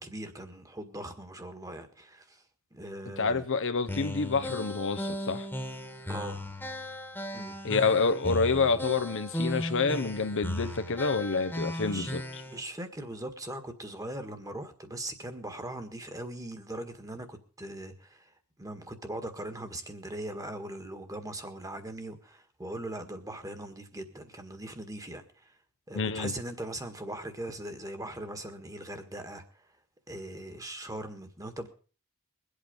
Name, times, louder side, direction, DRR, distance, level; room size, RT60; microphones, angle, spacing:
voice 1, 0.0-2.4 2.7-3.5 6.1-6.4 7.3-7.6 11.8-12.1 12.5-18.3 18.6-25.2 25.9-29.4 30.1-31.7, right 1 dB, 15° right, 1.7 m, -40 dB
voice 2, 3.2-5.5 7.6-12.2 25.9-26.3, left 4 dB, 60° left, 0.9 m, -28 dB
sound 1, 3.9-12.6, left 1 dB, 10° left, 1.6 m, -36 dB
22.0 x 8.4 x 5.2 m
head